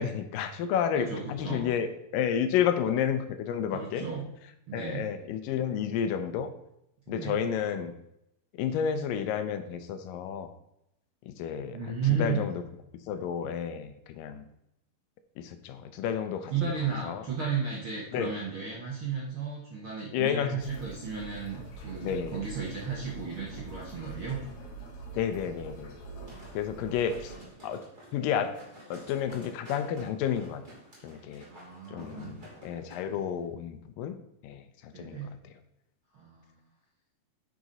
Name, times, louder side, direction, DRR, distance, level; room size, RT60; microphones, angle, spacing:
voice 1, 0.0-4.1 4.7-6.5 7.1-7.9 8.6-10.5 11.3-11.8 12.2-12.5 13.1-14.4 15.4-16.7 17.0-17.2 18.1-18.3 20.1-20.6 22.0-22.4 25.2-25.9 26.5-27.3 27.6-27.8 28.1-28.6 28.9-30.6 31.0-31.4 31.9-34.2 34.4-35.2, left 8 dB, 80° left, 9 dB, 2.2 m, -31 dB
voice 2, 1.1-1.6 3.7-4.2 4.7-5.1 7.1-7.4 11.7-12.5 16.5-24.4 26.4-26.6 31.5-32.3 33.1-33.2 34.9-35.3 36.1-36.5, right 6 dB, 60° right, -4 dB, 1.3 m, -34 dB
sound 1, 20.6-27.4, right 3 dB, 55° left, 1.8 m, -44 dB
sound 2, 26.3-33.0 33.4-33.5, equal, 15° right, 2.6 m, -51 dB
9.1 x 6.1 x 3.9 m, 0.82 s
omnidirectional pair, 4.1 m